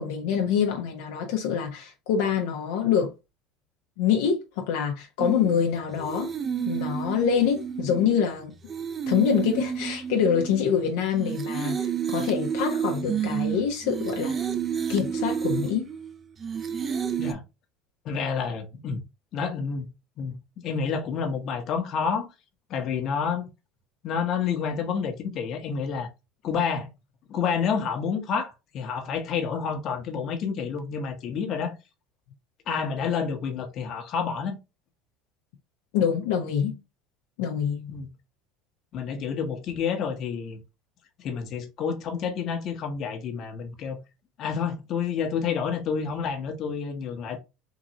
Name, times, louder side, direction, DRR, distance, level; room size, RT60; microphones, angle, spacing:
voice 1, 0.0-3.1 4.0-6.3 6.6-8.5 9.1-14.3 14.9-15.9 35.9-36.8 37.4-37.9, left 7 dB, 80° left, 0.8 m, -25 dB
sound 1, 5.2-17.3, right 7 dB, 30° right, 0.5 m, -30 dB
voice 2, 18.0-19.0 19.3-19.9 20.2-20.4 20.6-22.3 22.7-23.5 24.0-26.1 26.4-26.9 27.3-31.7 32.7-34.6 37.9-38.1 38.9-40.6 41.2-44.0 44.4-47.4, left 6 dB, 50° left, 1.0 m, -29 dB
3.8 x 2.6 x 3.0 m
supercardioid pair, 110°, 0 cm